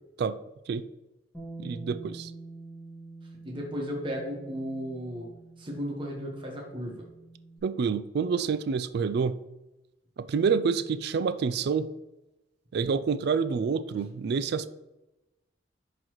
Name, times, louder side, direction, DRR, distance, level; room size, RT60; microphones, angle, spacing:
Bass guitar, 1.3-7.6, right 2 dB, 5° left, 1.6 m, -46 dB
voice 1, 1.6-2.3 7.6-9.4 10.2-11.9 12.7-14.7, right 5 dB, 60° right, 0.3 m, -27 dB
voice 2, 3.4-5.3 5.6-7.0, equal, 30° right, 1.2 m, -35 dB
11.0 x 4.0 x 3.0 m
head